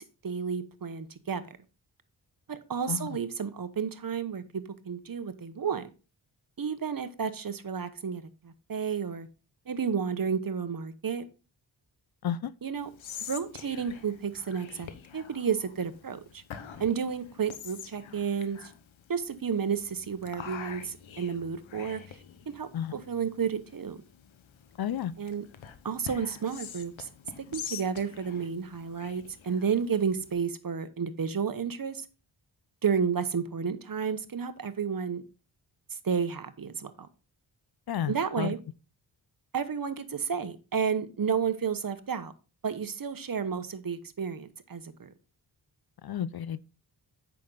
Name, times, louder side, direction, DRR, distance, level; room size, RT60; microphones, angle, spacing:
voice 1, 0.0-1.4 2.5-5.9 6.6-9.3 9.7-11.3 12.6-12.9 13.3-16.4 16.8-18.7 19.1-22.0 22.5-24.0 25.2-25.4 25.8-27.1 27.5-32.0 32.8-35.2 36.0-37.1 38.1-38.6 39.5-42.3 42.6-45.1, right 6 dB, 45° right, 1.1 m, -31 dB
Whispering, 12.8-30.3, left 8 dB, 80° left, 1.1 m, -46 dB
voice 2, 24.8-25.1 37.9-38.5 46.0-46.6, left 9 dB, 55° left, 0.6 m, -32 dB
8.4 x 6.2 x 3.9 m
cardioid pair, 45°, 46 cm